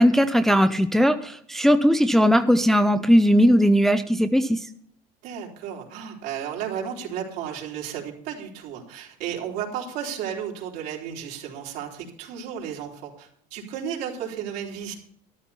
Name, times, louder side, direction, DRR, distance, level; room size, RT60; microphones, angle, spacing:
voice 1, 0.0-4.6, equal, ahead, 8 dB, 0.5 m, -18 dB
voice 2, 5.2-15.0, right 8 dB, 70° right, -1 dB, 3.7 m, -33 dB
13.0 x 12.5 x 4.2 m, 0.64 s
cardioid pair, 165°, 17 cm